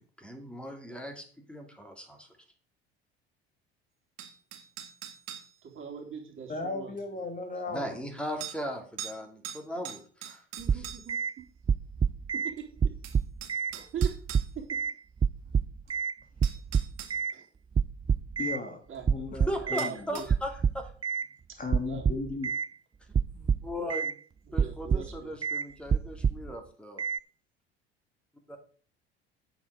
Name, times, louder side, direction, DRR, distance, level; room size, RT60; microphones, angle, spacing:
voice 1, 0.0-2.3 7.7-10.4 10.7-10.8 19.3-20.9 23.3-24.2 24.5-27.1 28.5-28.6, equal, 5° left, 3 dB, 2.7 m, -38 dB
sound 1, 4.2-5.5 7.0-7.1 8.4-8.6 9.0-9.2 9.4-11.2 12.6-12.7 13.0-14.5 15.9-16.0 16.4-17.1 19.8-20.3, right 10 dB, 60° right, 2.1 m, -42 dB
voice 2, 5.6-7.0 10.6-11.4 13.7-14.1 17.3-17.4 18.9-19.2 19.6-20.3 21.8-22.0 24.5-25.3, right 7 dB, 40° right, 1 dB, 3.1 m, -42 dB
voice 3, 6.5-8.0 18.4-18.8 19.1-19.9 21.6-22.5, left 3 dB, 25° left, 6 dB, 1.7 m, -35 dB
sound 2, 10.7-11.3 11.7-12.5 12.8-13.7 14.0-14.9 15.2-16.1 16.4-17.3 17.8-18.6 19.1-19.9 20.3-21.3 21.7-22.7 23.1-24.1 24.5-25.2 25.4-25.7 25.9-26.5 27.0-27.2, right 6 dB, 15° right, 0.3 m, -27 dB
8.8 x 7.2 x 5.0 m, 0.43 s
hypercardioid pair, 65°, 30 cm